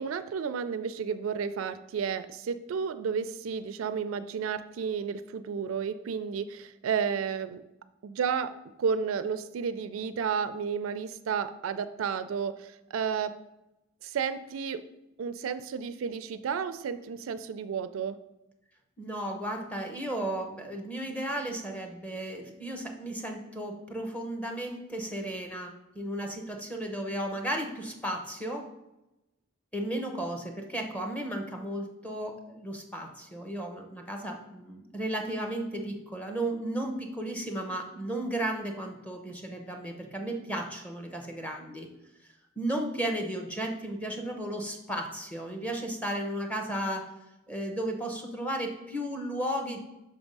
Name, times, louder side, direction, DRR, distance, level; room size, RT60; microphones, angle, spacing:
voice 1, 0.0-7.6 8.0-8.5 8.8-13.4 14.0-14.8 15.2-18.2, right 6 dB, 85° right, 13 dB, 0.4 m, -32 dB
voice 2, 19.0-28.6 29.7-41.9 42.6-47.0 47.5-49.8, right 1 dB, 5° left, 2 dB, 0.8 m, -34 dB
5.7 x 3.5 x 5.3 m, 0.93 s
head